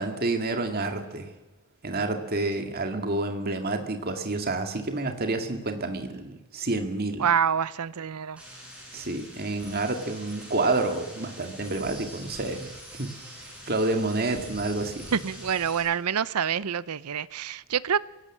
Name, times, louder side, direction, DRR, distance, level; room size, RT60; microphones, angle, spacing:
voice 1, 0.0-1.3 1.8-7.3 8.9-13.1 13.7-15.1, right 2 dB, 45° right, 2.2 m, -29 dB
voice 2, 7.2-8.4 15.1-18.0, right 7 dB, 85° right, 0.6 m, -26 dB
sound 1, 8.4-15.8, equal, 5° right, 7.5 m, -44 dB
23.0 x 17.5 x 7.4 m
head